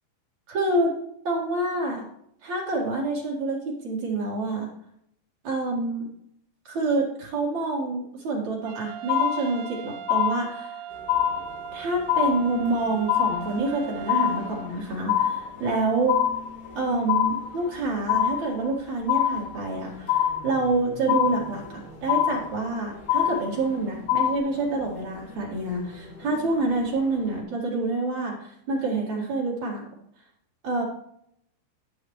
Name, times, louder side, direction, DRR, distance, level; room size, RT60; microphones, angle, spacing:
voice 1, 0.5-0.9 1.2-2.0 2.4-4.7 5.4-6.1 6.6-10.8 11.7-16.2 16.7-29.9 30.6-30.8, right 2 dB, 45° right, -4 dB, 2.7 m, -27 dB
Trumpet, 8.6-14.7, right 9 dB, 90° right, 3.2 m, -39 dB
sound 1, 9.1-9.8 10.1-10.8 11.1-11.8 12.1-12.8 13.1-13.8 14.1-14.8 15.1-15.8 16.1-16.8 17.1-17.8 18.1-18.8 19.1-19.8 20.1-20.8 21.1-21.8 22.1-22.8 23.1-23.8 24.1-24.4, left 11 dB, 80° left, 3.2 m, -24 dB
sound 2, 10.9-27.4, left 2 dB, 55° left, 4.8 m, -45 dB
12.5 x 8.9 x 3.2 m, 0.73 s
omnidirectional pair, 5.6 m